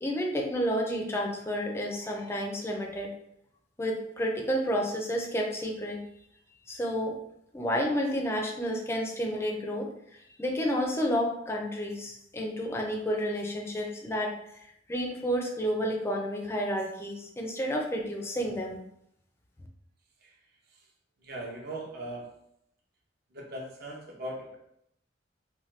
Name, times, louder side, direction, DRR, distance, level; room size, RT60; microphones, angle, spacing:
voice 1, 0.0-3.1 3.8-6.0 6.7-7.2 7.5-9.9 10.4-14.3 14.9-18.8, equal, 15° left, 1 dB, 0.4 m, -30 dB
voice 2, 21.2-22.3 23.3-24.6, right 1 dB, 55° right, -1 dB, 0.7 m, -39 dB
2.8 x 2.2 x 3.1 m, 0.76 s
head